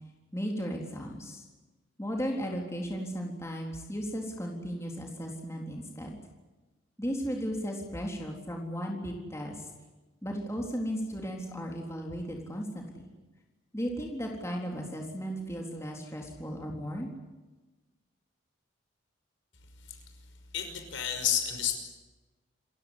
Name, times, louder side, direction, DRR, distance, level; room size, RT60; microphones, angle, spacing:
voice 1, 0.3-1.4 2.0-6.2 7.0-9.7 10.2-13.1 13.7-17.1, equal, 15° left, 0 dB, 3.9 m, -35 dB
voice 2, 20.5-21.8, left 9 dB, 70° left, 6 dB, 5.7 m, -31 dB
28.5 x 16.5 x 10.0 m, 1.2 s
head